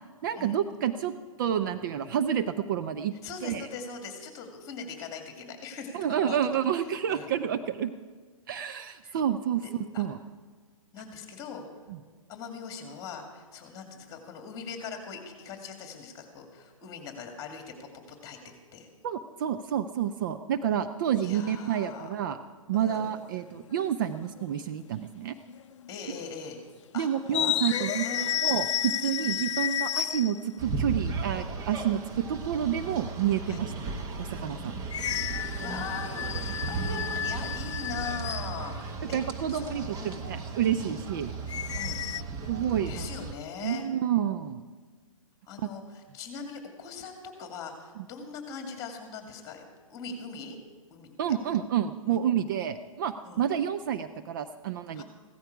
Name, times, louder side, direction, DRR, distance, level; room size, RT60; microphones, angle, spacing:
voice 1, 0.2-1.1 1.4-3.1 3.4-3.7 5.9-7.9 8.5-9.6 10.0-10.2 11.9-12.0 19.0-22.4 22.7-25.3 26.9-28.0 28.4-32.0 32.3-33.7 34.2-34.8 39.1-41.3 42.5-43.1 43.6-44.6 45.6-45.7 48.0-48.1 51.2-55.0, right 9 dB, 35° right, 9 dB, 0.5 m, -29 dB
voice 2, 3.2-6.4 7.1-7.3 9.0-9.2 9.6-10.0 10.9-11.6 12.3-18.9 21.2-22.1 22.7-23.1 25.9-26.6 26.9-28.4 29.2-29.5 31.8-32.0 33.5-33.6 35.5-36.4 36.6-39.2 39.5-40.2 40.8-41.0 41.7-42.0 42.9-43.8 45.5-49.6 49.9-50.6 50.9-51.4 52.1-52.2 53.2-53.4 54.9-55.0, left 5 dB, 20° left, 4 dB, 2.4 m, -41 dB
sound 1, 22.9-23.2 24.4-24.5 25.5-25.9 26.1-26.3 27.3-30.5 34.9-38.7 41.5-42.2, left 11 dB, 55° left, 0.5 m, -31 dB
sound 2, 30.6-43.4, right 4 dB, 20° right, 1.1 m, -36 dB
16.0 x 13.5 x 4.9 m, 1.5 s
figure-of-eight pair, 125°, 18 cm